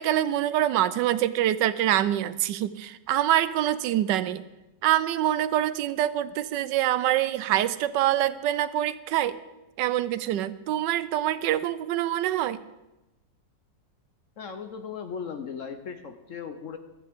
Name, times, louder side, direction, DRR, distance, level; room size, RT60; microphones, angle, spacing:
voice 1, 0.0-4.4 4.8-9.4 9.8-12.6, right 12 dB, 80° right, 15 dB, 1.2 m, -25 dB
voice 2, 14.4-16.8, left 6 dB, 60° left, 8 dB, 0.9 m, -37 dB
14.0 x 14.0 x 3.5 m, 1.0 s
omnidirectional pair, 1.9 m